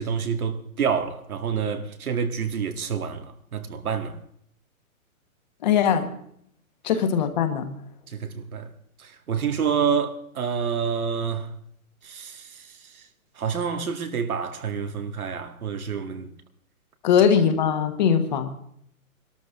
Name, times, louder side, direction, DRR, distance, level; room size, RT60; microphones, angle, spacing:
voice 1, 0.0-4.2 8.1-8.7 9.0-11.5 12.0-13.0 13.4-16.3, right 6 dB, 90° right, 2.0 m, -28 dB
voice 2, 5.6-6.1 6.8-7.7 17.0-18.5, left 7 dB, 30° left, 1.3 m, -21 dB
22.0 x 13.0 x 3.6 m
hypercardioid pair, 165°, 42 cm